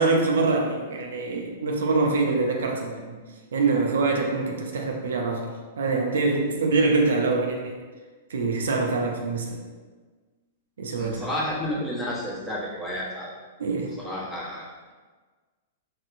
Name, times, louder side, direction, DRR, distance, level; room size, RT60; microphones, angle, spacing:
voice 1, 0.0-3.2 3.5-7.8 8.3-9.6 10.8-11.3 13.6-13.9, right 3 dB, 75° right, 1 dB, 0.5 m, -24 dB
voice 2, 11.0-13.3 14.0-14.7, left 1 dB, 10° left, -7 dB, 1.0 m, -31 dB
3.3 x 2.7 x 2.6 m, 1.4 s
hypercardioid pair, 110°, 0 cm